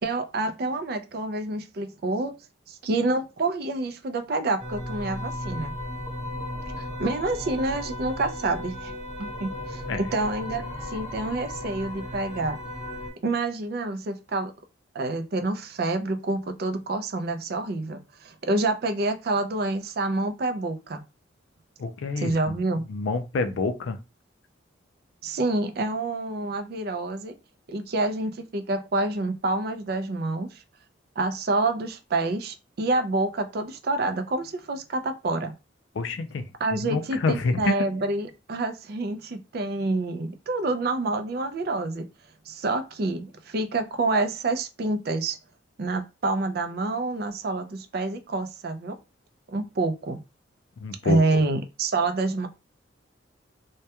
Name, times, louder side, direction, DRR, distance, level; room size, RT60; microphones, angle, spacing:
voice 1, 0.0-2.3 2.7-5.7 6.8-8.9 9.2-9.8 10.1-12.6 13.2-14.5 14.9-21.0 22.2-22.8 25.2-27.3 27.7-30.6 31.2-35.5 36.6-42.1 42.5-45.4 45.8-49.0 49.5-50.2 51.0-52.5, right 2 dB, 55° right, 0.4 m, -27 dB
sound 1, 4.6-13.1, left 1 dB, ahead, 0.8 m, -35 dB
voice 2, 21.8-22.3 22.9-24.0 35.9-37.8 50.8-51.2, left 3 dB, 75° left, 0.4 m, -27 dB
2.2 x 2.1 x 2.7 m
head